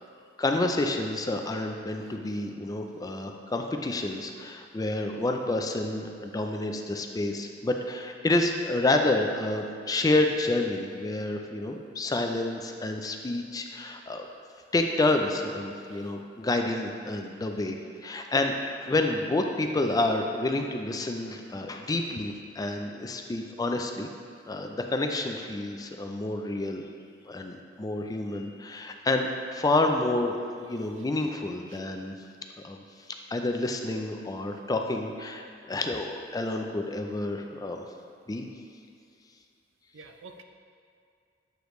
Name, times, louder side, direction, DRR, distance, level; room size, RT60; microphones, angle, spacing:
voice 1, 0.4-14.3 14.7-24.1 24.5-26.8 27.2-32.1 32.6-32.8 33.3-37.8 38.3-38.5, left 2 dB, 20° left, 4 dB, 0.4 m, -29 dB
voice 2, 2.0-2.4 15.9-16.1 31.0-31.1 31.7-31.8 39.9-40.4, right 4 dB, 75° right, 5 dB, 0.5 m, -50 dB
7.9 x 5.0 x 3.1 m, 2.4 s
head